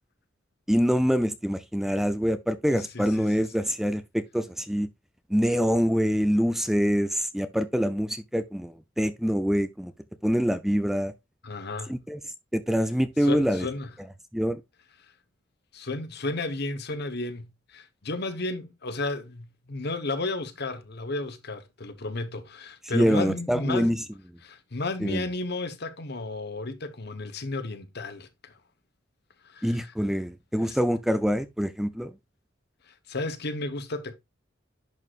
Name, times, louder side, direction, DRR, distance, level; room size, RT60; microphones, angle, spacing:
voice 1, 0.7-4.9 5.3-9.9 10.2-11.1 11.9-12.2 12.5-13.7 14.3-14.6 22.9-24.0 25.0-25.2 29.6-32.1, equal, ahead, 0.5 m, -25 dB
voice 2, 2.7-3.3 11.4-11.9 13.2-13.9 15.7-23.9 24.4-28.5 29.4-29.9 30.6-30.8 32.9-34.1, left 2 dB, 60° left, 1.1 m, -33 dB
10.5 x 4.8 x 2.4 m
head